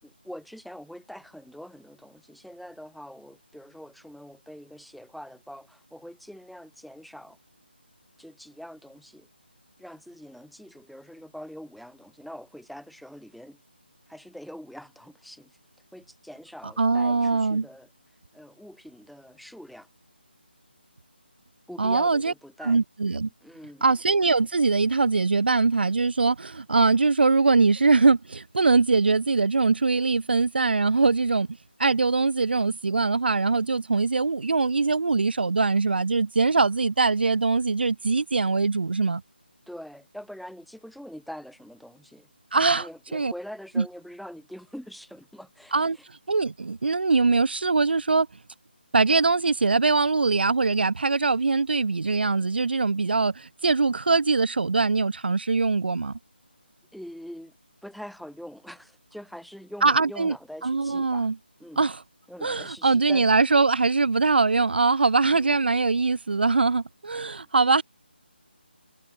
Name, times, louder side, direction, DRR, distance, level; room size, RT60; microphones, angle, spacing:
voice 1, 0.0-7.4 8.2-9.3 9.8-13.6 14.1-15.6 15.9-17.9 18.3-19.9 21.7-22.8 23.4-23.9 39.7-42.3 42.7-46.0 56.9-57.5 57.8-61.3 61.6-61.9 62.3-63.3 65.3-65.6, equal, ahead, 4.6 m, -44 dB
voice 2, 16.8-17.6 21.8-22.3 22.6-23.3 23.8-31.5 31.8-39.2 42.5-43.3 43.8-43.9 45.7-48.3 48.9-56.1 59.8-60.3 60.6-61.3 61.8-62.0 62.4-67.8, right 4 dB, 65° right, 0.8 m, -22 dB
figure-of-eight pair, 170°, 6 cm